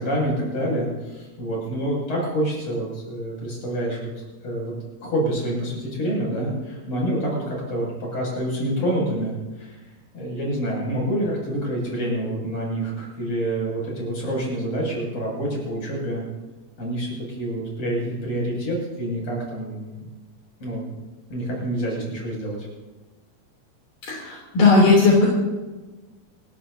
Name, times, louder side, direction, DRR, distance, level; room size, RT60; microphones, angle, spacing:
voice 1, 0.0-4.1 4.4-4.7 5.0-9.8 10.1-16.2 16.8-19.9 20.6-20.9 21.3-22.7, right 1 dB, 50° left, -3 dB, 8.4 m, -27 dB
voice 2, 24.1-25.3, left 3 dB, 70° left, -4 dB, 5.0 m, -16 dB
29.0 x 16.0 x 2.8 m, 1.2 s
omnidirectional pair, 3.9 m